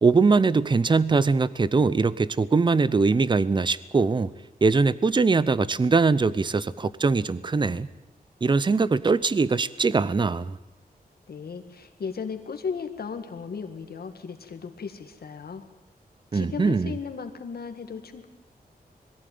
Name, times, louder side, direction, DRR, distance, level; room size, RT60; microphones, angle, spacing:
voice 1, 0.0-4.3 4.6-7.9 8.4-10.6 16.3-17.0, right 4 dB, 30° right, 17 dB, 0.7 m, -22 dB
voice 2, 11.3-15.6 16.3-18.3, left 6 dB, 75° left, 6 dB, 2.0 m, -36 dB
21.5 x 15.5 x 9.4 m, 0.99 s
wide cardioid pair, 150°, 16 cm